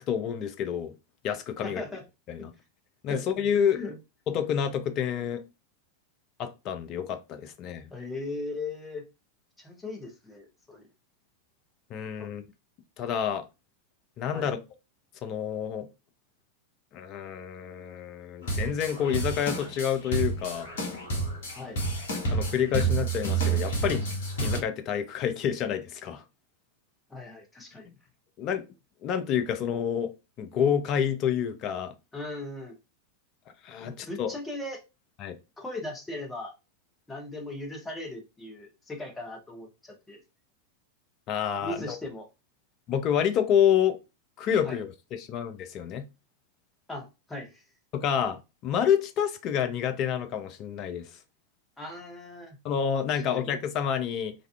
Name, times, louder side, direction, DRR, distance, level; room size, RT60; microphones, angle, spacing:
voice 1, 0.1-0.9 1.2-1.8 2.3-2.5 3.0-3.8 4.3-5.4 6.4-7.9 11.9-12.4 13.0-13.4 14.2-14.6 15.2-15.9 16.9-20.7 22.3-24.0 24.4-26.2 28.4-28.6 29.0-30.1 30.4-31.9 33.6-34.3 35.2-35.4 41.3-42.0 42.9-44.0 44.4-46.1 47.9-51.1 52.6-54.3, left 8 dB, 35° left, 0.4 m, -28 dB
voice 2, 1.6-2.0 3.1-3.2 3.7-4.0 7.9-9.0 9.6-10.9 12.2-12.3 14.3-14.5 21.5-21.8 27.1-27.9 32.1-32.7 33.8-34.8 35.6-36.5 37.1-40.2 41.6-42.3 44.7-44.8 46.9-47.6 51.8-52.6 53.3-53.5, left 2 dB, 10° left, 0.7 m, -38 dB
sound 1, 18.4-24.6, right 3 dB, 60° left, 0.8 m, -29 dB
2.4 x 2.3 x 2.3 m
figure-of-eight pair, 90°, 0 cm